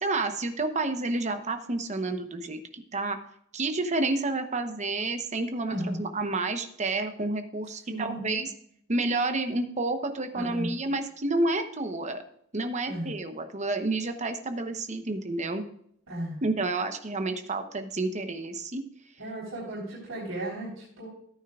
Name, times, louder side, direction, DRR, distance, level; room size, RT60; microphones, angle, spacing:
voice 1, 0.0-3.2 3.5-8.5 8.9-12.2 12.5-15.6 16.4-18.8, right 2 dB, 35° right, 8 dB, 0.9 m, -30 dB
voice 2, 5.7-6.0 7.9-8.4 10.3-10.7 12.9-13.2 16.1-16.4 19.2-21.1, right 1 dB, 85° right, -7 dB, 3.9 m, -35 dB
14.0 x 9.2 x 2.4 m, 0.69 s
head